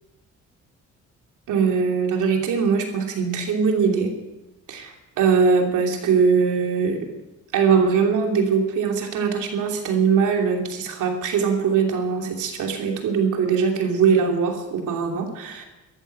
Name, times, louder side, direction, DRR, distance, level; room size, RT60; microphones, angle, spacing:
voice 1, 1.5-4.1 4.7-7.1 7.5-15.6, right 6 dB, 80° right, 2 dB, 2.9 m, -21 dB
14.0 x 13.5 x 5.6 m, 1.0 s
cardioid pair, 90°, 30 cm